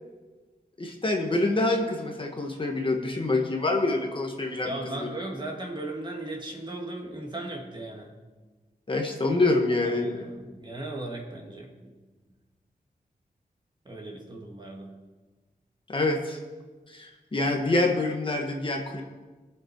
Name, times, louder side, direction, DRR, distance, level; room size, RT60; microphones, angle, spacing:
voice 1, 0.8-5.1 8.9-10.3 15.9-16.4 16.9-19.0, left 2 dB, 35° left, 2 dB, 1.4 m, -26 dB
voice 2, 4.6-8.2 9.8-11.9 13.9-14.9, right 2 dB, 30° right, 0 dB, 2.3 m, -37 dB
21.5 x 7.1 x 4.6 m, 1.3 s
wide cardioid pair, 130°, 15 cm